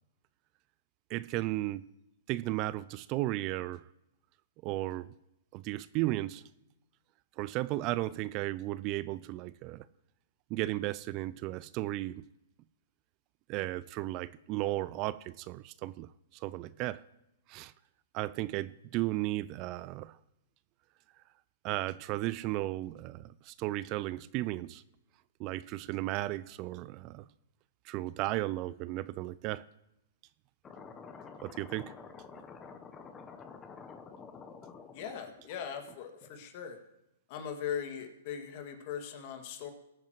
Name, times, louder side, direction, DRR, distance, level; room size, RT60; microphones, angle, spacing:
voice 1, 1.1-1.9 2.3-3.8 4.6-5.1 5.5-6.4 7.4-9.9 10.5-12.2 13.5-17.0 17.5-17.7 18.1-20.2 21.6-24.8 25.4-27.2 27.8-29.6 31.4-31.9 32.3-32.4, right 17 dB, 35° right, 18 dB, 0.3 m, -35 dB
sound 1, 30.6-36.4, left 5 dB, 20° left, 0.9 m, -49 dB
voice 2, 34.9-36.8 37.3-39.7, left 8 dB, 45° left, 5 dB, 2.1 m, -39 dB
21.5 x 9.0 x 3.1 m, 0.87 s
hypercardioid pair, 135°, 0 cm